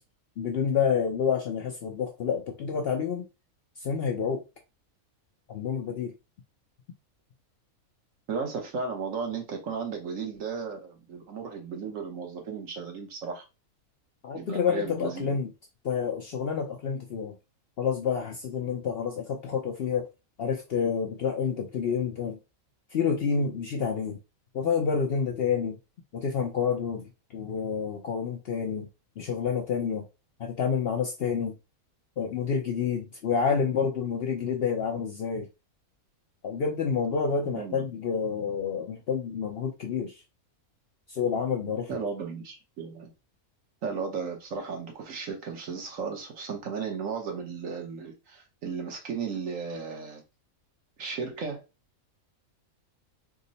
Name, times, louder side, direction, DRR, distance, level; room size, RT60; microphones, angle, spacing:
voice 1, 0.4-3.3 3.8-4.4 5.5-6.1 14.2-15.5 15.8-17.4 17.8-20.1 20.4-22.4 22.9-24.2 24.5-25.8 26.1-28.9 29.2-30.0 30.4-31.5 32.2-35.5 36.4-40.2 41.1-41.9, left 6 dB, 60° left, 0.6 m, -28 dB
voice 2, 8.3-13.4 14.3-15.4 37.5-37.9 41.9-43.1 43.8-50.2 51.0-51.6, right 5 dB, 70° right, 1.3 m, -35 dB
3.6 x 2.0 x 4.0 m
omnidirectional pair, 1.5 m